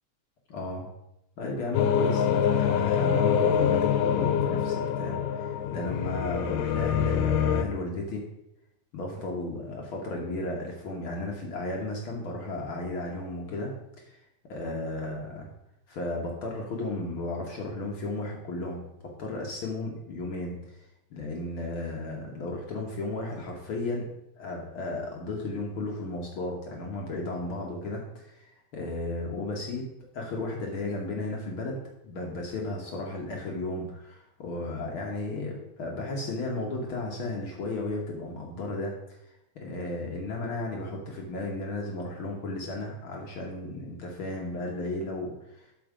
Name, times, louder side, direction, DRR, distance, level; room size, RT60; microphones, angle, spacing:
voice 1, 0.5-0.9 1.4-8.2 8.9-14.2 14.5-15.5 15.9-24.1 24.4-45.7, left 2 dB, 65° left, 0 dB, 1.3 m, -34 dB
sound 1, 1.7-7.6, left 8 dB, 80° left, 2.2 m, -25 dB
11.5 x 4.5 x 4.9 m, 0.85 s
omnidirectional pair, 3.8 m